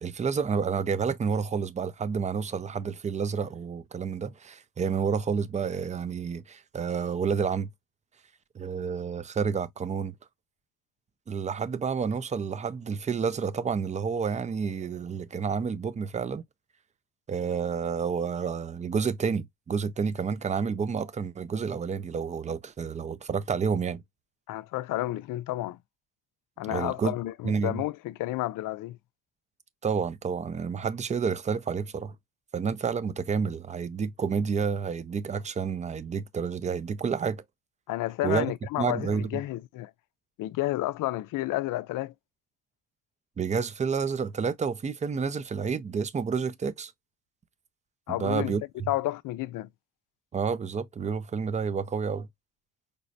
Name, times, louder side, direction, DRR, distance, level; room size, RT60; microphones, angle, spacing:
voice 1, 0.0-7.7 8.5-10.1 11.3-16.4 17.3-24.0 26.7-27.1 27.4-27.8 29.8-32.1 32.5-37.4 38.2-38.5 38.8-39.3 43.4-46.9 48.1-48.9 50.3-52.3, right 6 dB, 20° right, 0.4 m, -29 dB
voice 2, 24.5-25.8 26.6-29.0 37.9-39.9 40.4-42.1 48.1-48.5 48.9-49.7, left 17 dB, 70° left, 0.5 m, -31 dB
5.2 x 2.0 x 2.6 m
supercardioid pair, 75°, 33 cm